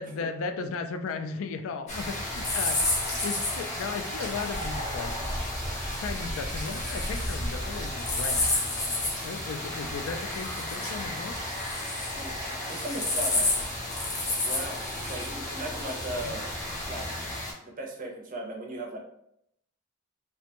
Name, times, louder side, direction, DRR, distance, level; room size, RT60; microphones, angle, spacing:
voice 1, 0.0-2.9 3.2-5.3 6.0-8.5 9.2-11.4 16.2-16.4, left 4 dB, 80° left, 7 dB, 0.3 m, -36 dB
sound 1, 1.9-17.5, left 2 dB, 35° left, 0.6 m, -31 dB
voice 2, 12.1-13.5 14.4-16.4 16.9-17.1 17.6-19.0, right 1 dB, 40° right, 1 dB, 0.5 m, -37 dB
2.5 x 2.1 x 2.8 m, 0.74 s
head